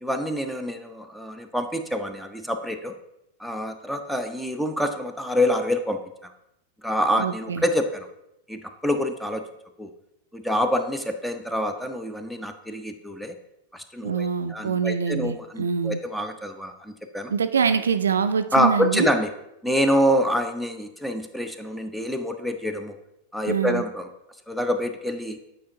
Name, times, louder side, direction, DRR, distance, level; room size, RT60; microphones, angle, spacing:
voice 1, 0.0-3.0 3.4-6.3 6.8-8.1 8.5-9.4 9.8-9.9 10.3-13.4 13.7-17.3 18.5-19.3 19.6-23.0 23.3-24.1 24.5-25.4, equal, ahead, 7 dB, 0.5 m, -26 dB
voice 2, 7.2-7.6 14.0-16.0 17.3-19.1 23.5-23.8, right 6 dB, 70° right, 10 dB, 0.3 m, -24 dB
8.5 x 4.5 x 2.7 m, 0.85 s
figure-of-eight pair, 90°, 0 cm